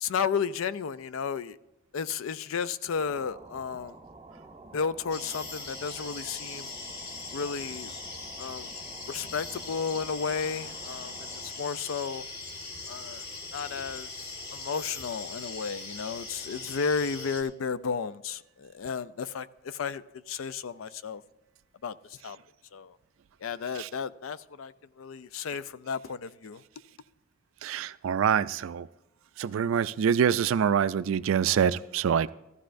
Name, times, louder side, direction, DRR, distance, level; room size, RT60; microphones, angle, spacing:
voice 1, 0.0-1.6 1.9-4.0 4.7-6.7 7.3-7.9 8.4-8.7 9.1-12.2 12.9-13.2 13.5-21.2 21.8-22.4 22.7-23.0 23.4-26.6, left 6 dB, 80° left, 0.4 m, -33 dB
sound 1, 2.8-11.7, right 2 dB, 20° right, 0.7 m, -50 dB
sound 2, 5.1-17.4, left 3 dB, 55° left, 1.5 m, -41 dB
voice 2, 27.6-28.9 29.4-32.3, right 8 dB, 75° right, 0.4 m, -25 dB
15.0 x 13.5 x 2.6 m
head